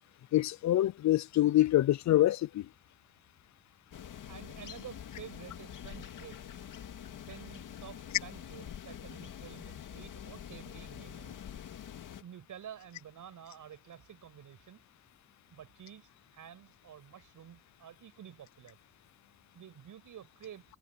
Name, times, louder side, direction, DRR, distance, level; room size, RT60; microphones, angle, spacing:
voice 1, 0.3-2.7, left 14 dB, 65° left, 0.5 m, -26 dB
sound 1, 3.9-12.2, left 9 dB, 85° left, 2.3 m, -46 dB
voice 2, 4.3-6.7 7.3-11.4 12.2-14.8 15.5-18.8 19.5-20.6, right 9 dB, 85° right, 7.5 m, -50 dB
wide cardioid pair, 135°, 31 cm